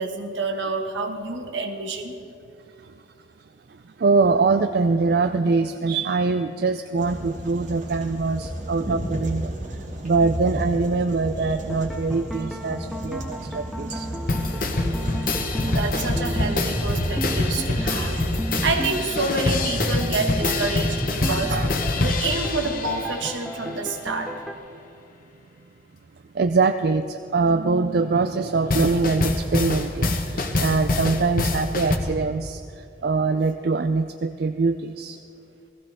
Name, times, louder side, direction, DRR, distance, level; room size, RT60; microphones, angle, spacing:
voice 1, 0.0-2.1 15.6-21.6 21.9-24.3, right 3 dB, 75° right, 4 dB, 1.4 m, -28 dB
voice 2, 4.0-9.5 10.0-14.1 15.1-15.8 16.4-16.5 18.1-18.2 21.3-21.7 23.7-23.8 26.3-35.2, right 4 dB, 55° right, 9 dB, 0.4 m, -23 dB
sound 1, 7.0-18.7, equal, 40° right, 1.9 m, -32 dB
sound 2, 11.7-24.5, equal, ahead, 0.7 m, -33 dB
sound 3, 14.3-23.5 28.7-32.0, left 2 dB, 45° left, 1.1 m, -25 dB
17.5 x 15.0 x 3.5 m, 2.8 s
head